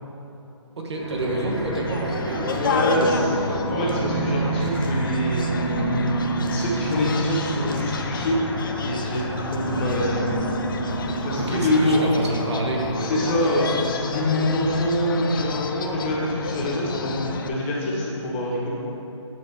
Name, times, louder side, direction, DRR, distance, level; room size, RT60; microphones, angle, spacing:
voice 1, 0.8-3.2 11.3-13.3, right 2 dB, 60° right, 0 dB, 1.2 m, -28 dB
sound 1, 0.9-11.7, right 2 dB, 30° right, 1.2 m, -28 dB
sound 2, 1.2-17.5, left 5 dB, 45° left, 0.4 m, -32 dB
voice 2, 2.6-5.8 6.5-8.4 8.8-10.3 11.2-12.0 13.0-18.7, left 1 dB, 20° left, -5 dB, 1.0 m, -25 dB
9.1 x 3.9 x 4.5 m, 2.9 s
figure-of-eight pair, 155°, 16 cm